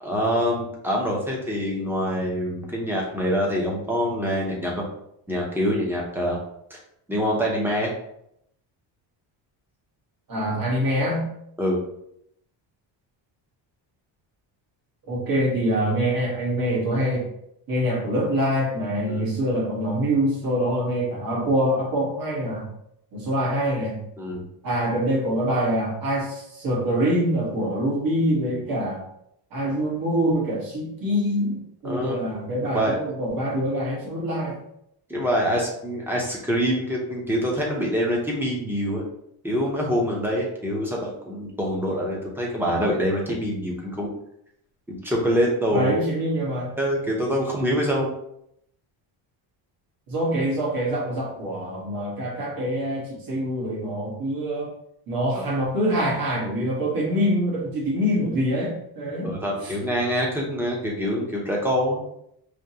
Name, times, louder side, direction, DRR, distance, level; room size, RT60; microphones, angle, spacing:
voice 1, 0.0-4.9 5.3-6.4 6.7-6.8 7.1-7.9 11.6-11.8 19.1-19.3 24.2-24.5 31.8-32.2 32.7-33.0 35.1-39.0 39.4-44.1 44.9-46.0 46.8-48.1 55.3-55.5 59.2-62.0, equal, 5° right, -2 dB, 0.9 m, -25 dB
voice 2, 10.3-11.3 15.1-17.3 17.7-22.7 23.1-24.0 24.6-29.0 29.5-34.6 45.7-46.7 50.1-54.7 55.1-59.4 59.6-59.7, equal, 45° right, -3 dB, 1.5 m, -25 dB
5.1 x 2.9 x 2.9 m, 0.74 s
cardioid pair, 155°, 47 cm